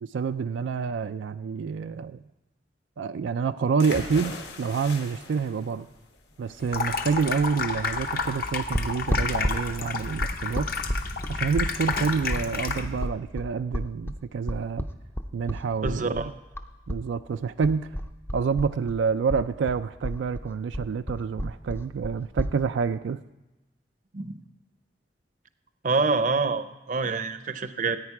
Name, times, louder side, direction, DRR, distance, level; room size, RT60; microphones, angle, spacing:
voice 1, 0.0-2.2 3.0-5.9 6.4-10.7 11.3-14.9 15.3-16.3 16.9-18.0 18.3-23.2, right 5 dB, 85° right, 10 dB, 0.4 m, -28 dB
sound 1, 3.8-11.5, left 3 dB, 70° left, 1.6 m, -42 dB
Water tap faucet / Sink (filling or washing), 6.6-13.1, left 4 dB, 50° left, 0.8 m, -30 dB
sound 2, 8.7-17.0 17.3-19.0 19.3-22.5, equal, 15° left, 0.5 m, -31 dB
voice 2, 15.8-16.3 24.1-24.3 25.8-28.0, right 4 dB, 45° right, 11 dB, 0.6 m, -26 dB
14.5 x 9.2 x 4.8 m, 1.0 s
head